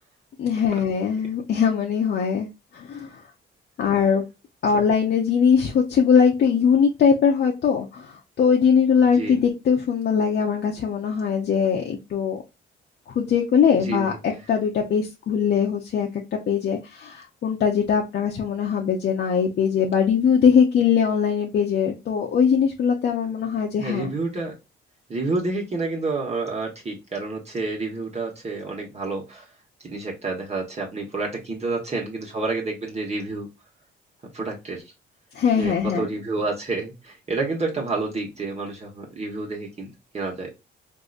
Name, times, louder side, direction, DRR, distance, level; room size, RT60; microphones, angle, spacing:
voice 1, 0.4-3.2 3.8-4.2 4.6-12.4 13.1-24.1 35.3-36.1, left 7 dB, 55° left, 1 dB, 0.7 m, -21 dB
voice 2, 23.8-24.5 25.1-29.4 29.8-33.5 34.3-34.8 35.5-39.9 40.1-40.5, right 3 dB, 35° right, 0 dB, 1.2 m, -29 dB
3.8 x 2.7 x 2.4 m, 0.25 s
cardioid pair, 90°, 20 cm